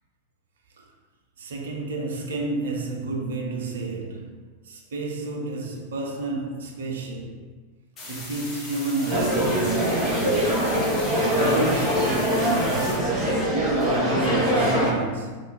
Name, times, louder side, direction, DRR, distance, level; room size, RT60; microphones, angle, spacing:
voice 1, 1.4-7.5 8.1-10.6 11.1-13.2 13.9-15.4, right 3 dB, 65° right, 0.5 m, -31 dB
ind white noise flange, 8.0-13.0, left 2 dB, 30° left, 0.9 m, -38 dB
sound 1, 9.1-14.9, equal, 15° right, 1.2 m, -23 dB
3.5 x 3.3 x 2.4 m
figure-of-eight pair, 90°, 0 cm